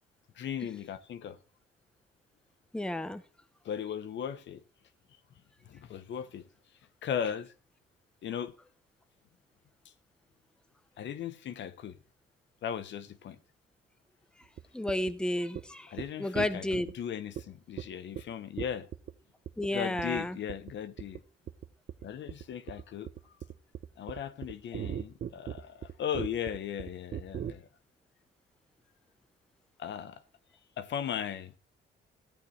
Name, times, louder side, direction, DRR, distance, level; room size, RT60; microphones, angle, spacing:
voice 1, 0.4-1.4 3.6-4.6 5.6-6.4 7.0-7.5 8.2-8.5 11.0-12.0 12.6-13.4 15.9-16.7 16.9-18.9 19.7-21.2 22.0-23.1 24.0-27.7 29.8-30.2 30.8-31.5, left 8 dB, 65° left, 1.0 m, -37 dB
voice 2, 2.7-3.2 14.7-15.9 16.2-16.9 19.6-20.4, left 1 dB, 5° left, 0.9 m, -31 dB
sound 1, 14.6-14.7 14.9-15.1 15.6-15.7 16.0-16.1 16.4-16.9 17.4-17.5 17.8-17.9 18.2-18.3 18.6-19.1 19.5-19.7 20.0-20.2 20.5-20.7 21.0-21.2 21.5-27.5, right 9 dB, 50° right, 0.7 m, -38 dB
15.0 x 8.8 x 3.2 m
cardioid pair, 90°, 20 cm